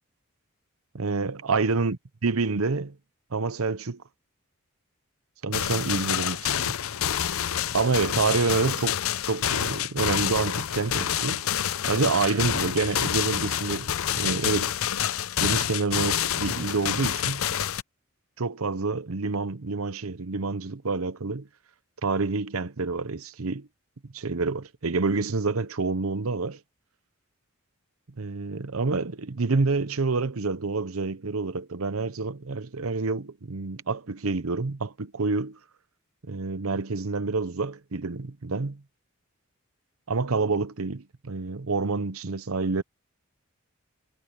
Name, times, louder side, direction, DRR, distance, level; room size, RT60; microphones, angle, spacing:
voice 1, 0.9-2.0 2.2-3.0 3.3-4.0 5.4-6.7 7.7-9.0 9.3-11.4 11.8-14.8 15.4-17.4 18.4-21.5 22.0-23.7 24.1-26.6 28.2-35.6 36.2-38.8 40.1-42.8, right 4 dB, 75° right, 0.9 m, -28 dB
sound 1, 5.5-17.8, left 10 dB, 75° left, 0.6 m, -28 dB
head